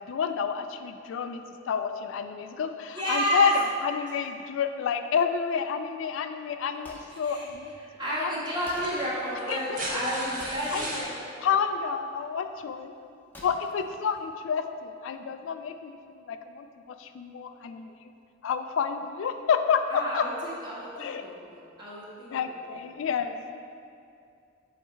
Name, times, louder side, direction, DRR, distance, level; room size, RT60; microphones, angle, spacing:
voice 1, 0.0-1.4 1.7-7.7 8.2-8.3 9.5-9.8 10.7-10.9 11.4-12.9 13.4-16.0 16.3-17.9 18.4-20.2 21.0-21.2 22.3-23.4, left 6 dB, 75° left, 8 dB, 0.3 m, -29 dB
voice 2, 2.9-3.5 7.2-7.4 8.0-11.3 19.9-22.5, equal, 25° right, -7 dB, 1.5 m, -31 dB
Wood, 6.4-14.8, left 1 dB, 10° left, 0.7 m, -52 dB
sound 1, 7.5-7.6 8.6-11.1 12.6-12.7, right 1 dB, 45° right, 1.0 m, -36 dB
7.3 x 3.2 x 4.6 m, 2.4 s
head